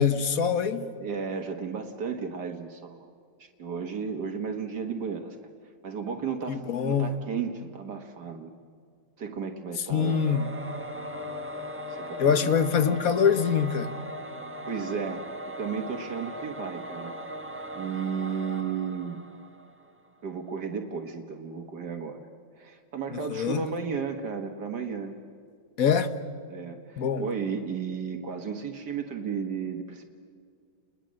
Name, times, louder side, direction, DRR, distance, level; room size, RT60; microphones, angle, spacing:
voice 1, 0.0-0.9 6.5-7.1 9.9-10.5 12.2-13.9 23.1-23.7 25.8-26.1 27.0-27.2, left 7 dB, 55° left, 1.5 m, -24 dB
voice 2, 0.8-3.1 3.4-5.4 5.8-8.5 9.2-10.2 11.9-12.5 14.7-15.3 15.6-17.1 17.5-19.2 20.2-22.3 22.6-25.1 26.5-30.1, right 6 dB, 65° right, 2.0 m, -34 dB
Singing / Musical instrument, 10.0-20.0, equal, 10° right, 1.1 m, -39 dB
30.0 x 21.0 x 7.6 m
omnidirectional pair, 1.9 m